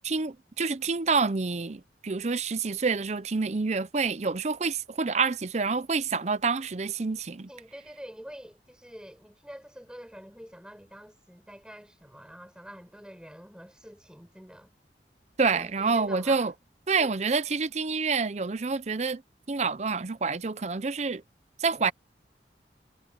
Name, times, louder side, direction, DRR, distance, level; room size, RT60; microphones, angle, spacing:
voice 1, 0.0-7.5 15.4-16.5 16.9-19.2 19.5-21.2 21.6-21.9, right 4 dB, 40° right, 0.6 m, -27 dB
voice 2, 7.5-14.7 15.5-16.5 17.0-17.1, equal, 5° right, 6.8 m, -46 dB
head